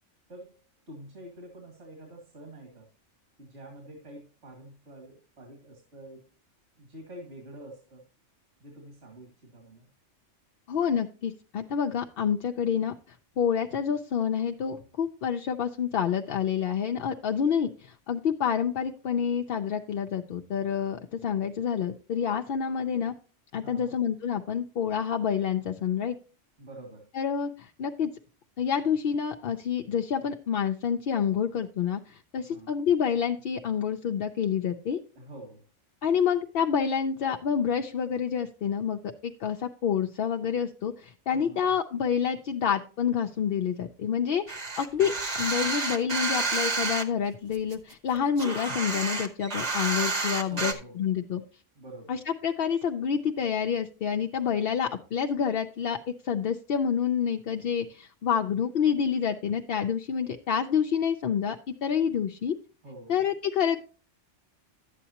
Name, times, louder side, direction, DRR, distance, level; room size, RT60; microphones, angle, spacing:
voice 1, 0.9-2.9 3.4-6.2 6.8-8.0 8.6-9.9 23.6-24.0 26.6-27.1 32.5-32.8 35.2-35.6 41.3-41.6 45.0-45.2 50.5-51.0 51.7-52.2 62.8-63.2, right 1 dB, 75° right, 0 dB, 2.5 m, -46 dB
voice 2, 10.7-12.9 13.4-23.1 23.5-26.2 27.1-28.1 28.6-35.0 36.0-45.1 45.4-51.4 52.1-62.5 63.1-63.8, left 7 dB, 60° left, 4 dB, 0.7 m, -28 dB
sound 1, 44.5-47.0 47.5-50.7, right 3 dB, 35° right, 1.0 m, -30 dB
11.0 x 8.4 x 2.8 m, 0.38 s
omnidirectional pair, 1.2 m